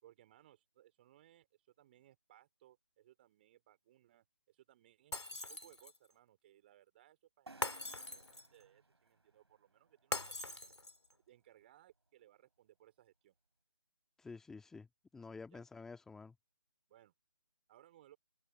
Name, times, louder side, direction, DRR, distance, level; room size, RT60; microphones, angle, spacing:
voice 1, 0.0-10.6 11.3-13.3 15.5-15.6 16.9-17.1 17.7-18.2, right 13 dB, 25° right, 4.4 m, -65 dB
Shatter, 5.1-6.1 7.6-8.6 10.1-11.1, left 2 dB, 75° left, 2.5 m, -42 dB
sound 1, 7.5-11.1, right 3 dB, 65° right, 5.6 m, -61 dB
voice 2, 14.2-16.4, left 4 dB, 5° left, 1.8 m, -50 dB
figure-of-eight pair, 150°, 14 cm